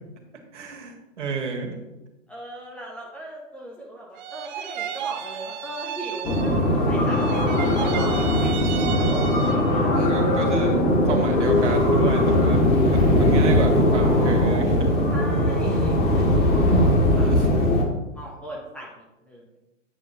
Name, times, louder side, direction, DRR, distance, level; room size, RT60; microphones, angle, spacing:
voice 1, 0.5-1.7 9.6-15.1 16.7-17.5, right 4 dB, 65° right, 1 dB, 2.0 m, -32 dB
voice 2, 2.3-10.1 15.1-17.3 18.1-19.4, right 1 dB, 5° left, -4 dB, 0.4 m, -39 dB
sound 1, 4.1-6.8 7.0-9.8, right 10 dB, 35° right, 0.6 m, -34 dB
sound 2, 6.2-17.8, left 1 dB, 25° left, 1.6 m, -20 dB
8.5 x 7.5 x 2.9 m, 0.98 s
figure-of-eight pair, 115°, 39 cm